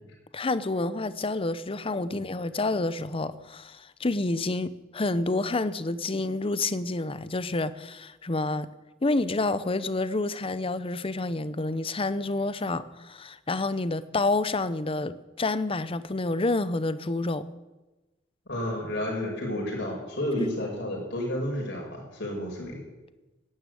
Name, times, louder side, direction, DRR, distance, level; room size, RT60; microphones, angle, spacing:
voice 1, 0.3-8.7 9.0-17.4, left 2 dB, 30° left, 15 dB, 0.7 m, -28 dB
voice 2, 18.5-22.8, left 1 dB, 65° left, -1 dB, 5.8 m, -31 dB
12.0 x 10.5 x 9.1 m, 1.1 s
head